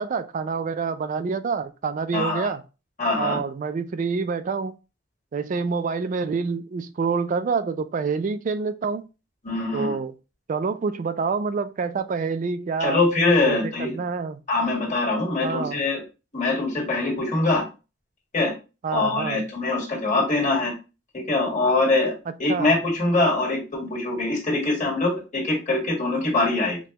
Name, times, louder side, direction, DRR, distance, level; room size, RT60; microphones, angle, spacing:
voice 1, 0.0-2.6 3.2-4.7 5.3-9.0 9.7-10.1 10.5-13.0 13.5-14.4 15.4-15.8 18.8-19.4 22.5-22.7, right 5 dB, 40° right, 0.3 m, -27 dB
voice 2, 2.1-2.5 3.0-3.4 9.4-10.0 12.8-13.9 14.5-16.0 16.3-17.6 18.3-18.5 18.9-20.7 21.1-22.1 22.4-26.8, left 2 dB, 35° left, 1.6 m, -23 dB
5.1 x 2.2 x 2.8 m
head